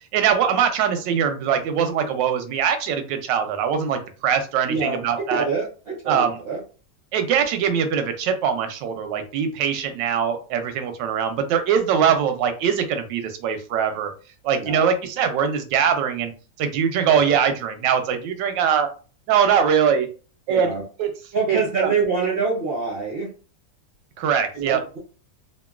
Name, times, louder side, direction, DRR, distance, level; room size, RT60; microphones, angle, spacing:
voice 1, 0.1-5.4 6.1-6.4 7.1-14.1 14.4-16.3 16.6-18.9 19.3-20.1 20.5-20.7 21.0-21.1 21.5-21.9 24.2-24.8, right 7 dB, 90° right, 7 dB, 1.3 m, -22 dB
voice 2, 4.7-6.6 14.6-14.8 20.5-20.8 21.3-23.3 24.5-25.0, right 4 dB, 55° right, -3 dB, 0.6 m, -25 dB
2.9 x 2.6 x 2.3 m, 0.36 s
omnidirectional pair, 1.9 m